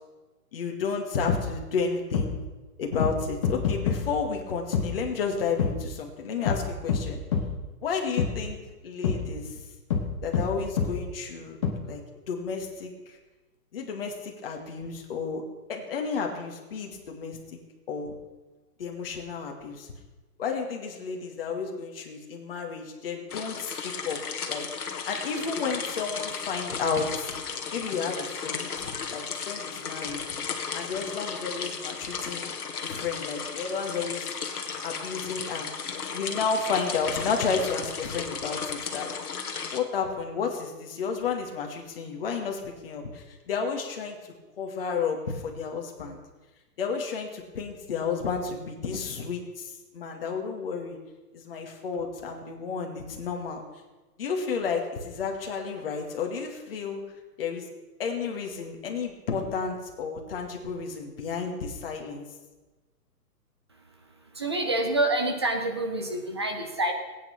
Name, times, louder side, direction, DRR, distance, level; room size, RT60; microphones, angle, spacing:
voice 1, 0.5-2.4 2.8-7.2 7.8-9.6 10.2-11.6 11.8-12.0 12.3-13.2 13.7-15.4 15.7-17.6 17.9-18.1 18.8-19.9 20.4-24.2 24.5-24.7 25.1-27.4 27.7-30.2 30.7-32.5 32.8-34.3 34.8-35.7 36.1-39.1 39.7-46.2 46.8-51.0 51.3-53.6 54.2-57.0 57.4-57.7 58.0-62.3, left 5 dB, 35° left, 2 dB, 2.3 m, -32 dB
sound 1, 1.3-1.4 2.1-2.3 3.0-3.1 3.4-4.0 4.7-4.9 5.6-5.7 6.5-6.6 6.9-7.0 7.3-7.5 8.2-8.3 9.0-9.2 9.9-10.0 10.3-10.5 10.8-10.9 11.6-11.7, left 6 dB, 15° left, 1.2 m, -25 dB
sound 2, 23.3-39.8, left 6 dB, 65° left, 2.0 m, -35 dB
voice 2, 64.3-66.9, right 2 dB, 15° right, 4 dB, 0.7 m, -27 dB
18.0 x 9.4 x 6.0 m, 1.2 s
hypercardioid pair, 170°, 48 cm